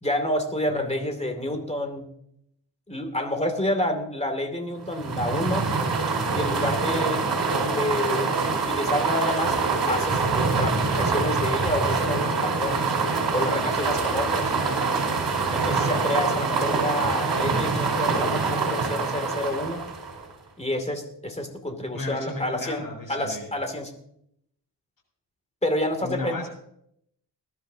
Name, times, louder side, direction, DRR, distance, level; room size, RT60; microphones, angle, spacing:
voice 1, 0.0-2.1 2.9-5.7 6.3-7.2 7.7-9.6 9.9-12.9 13.3-14.5 15.5-19.8 20.6-22.8 23.1-23.9 25.6-26.4, left 1 dB, 15° left, 5 dB, 2.5 m, -29 dB
voice 2, 0.7-1.6 21.9-23.5 26.0-26.5, left 2 dB, 50° left, 1 dB, 7.0 m, -35 dB
sound 1, 4.9-20.3, right 4 dB, 65° right, 4.3 m, -25 dB
20.5 x 12.5 x 2.8 m, 0.72 s
wide cardioid pair, 100°, 43 cm